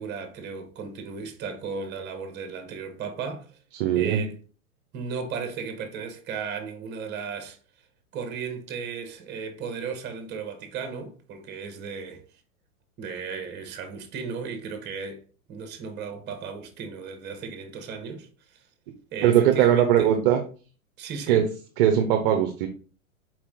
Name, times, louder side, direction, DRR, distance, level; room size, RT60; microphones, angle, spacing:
voice 1, 0.0-3.5 3.9-4.4 4.9-7.6 8.1-12.2 13.0-15.2 15.5-18.6 19.1-20.1 21.0-21.5, right 5 dB, 25° right, 0.9 m, -35 dB
voice 2, 3.7-4.2 19.2-20.4 21.3-21.5 21.8-22.7, right 10 dB, 40° right, 0.6 m, -20 dB
4.5 x 2.9 x 3.6 m
hypercardioid pair, 130°, 41 cm